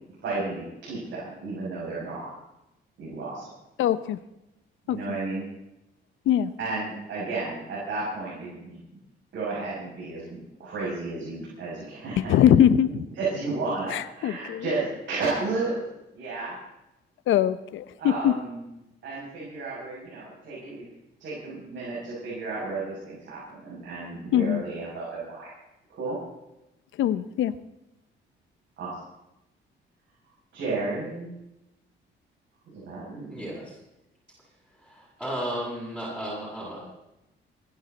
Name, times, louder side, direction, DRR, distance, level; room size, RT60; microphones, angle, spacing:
voice 1, 0.2-2.3 3.0-3.4 4.9-5.5 6.6-8.8 9.3-12.6 13.1-15.8 16.1-16.6 18.0-18.7 19.0-20.8 21.2-25.5 26.0-26.2 28.8-29.0 30.5-31.4 32.7-33.5, right 3 dB, 70° right, -7 dB, 6.9 m, -33 dB
voice 2, 3.8-4.2 4.9-5.0 6.3-6.5 12.2-12.9 13.9-14.6 17.3-18.3 24.3-24.6 27.0-27.5, left 10 dB, 80° left, 15 dB, 0.8 m, -21 dB
voice 3, 33.3-33.7 34.8-36.8, right 1 dB, 5° right, -11 dB, 7.1 m, -34 dB
26.5 x 11.0 x 4.1 m, 0.90 s
cardioid pair, 90°, 20 cm